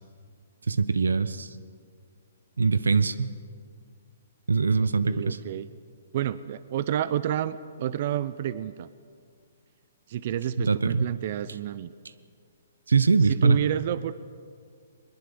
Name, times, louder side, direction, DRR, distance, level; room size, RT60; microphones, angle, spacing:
voice 1, 0.7-1.5 2.6-3.3 4.5-5.4 10.6-11.1 12.9-13.6, right 4 dB, 90° right, 15 dB, 0.9 m, -22 dB
voice 2, 4.8-5.7 6.1-8.9 10.1-11.9 13.2-14.1, right 11 dB, 50° right, 16 dB, 0.7 m, -30 dB
21.5 x 20.5 x 7.0 m, 2.2 s
hypercardioid pair, 140°, 0 cm